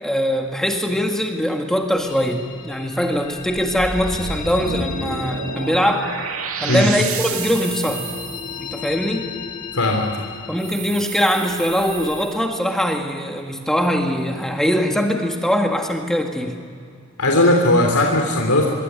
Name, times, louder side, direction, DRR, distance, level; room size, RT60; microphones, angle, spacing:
voice 1, 0.0-6.1 6.6-8.1 8.6-9.3 10.5-16.6, equal, ahead, 2 dB, 1.7 m, -22 dB
sound 1, 2.0-12.3, left 6 dB, 35° left, 2.5 m, -36 dB
sound 2, 3.5-8.6 10.6-12.4, right 5 dB, 70° right, 2.4 m, -30 dB
voice 2, 9.7-10.0 17.2-18.7, left 1 dB, 85° left, 1 dB, 3.4 m, -17 dB
26.0 x 22.5 x 9.6 m, 2.2 s
head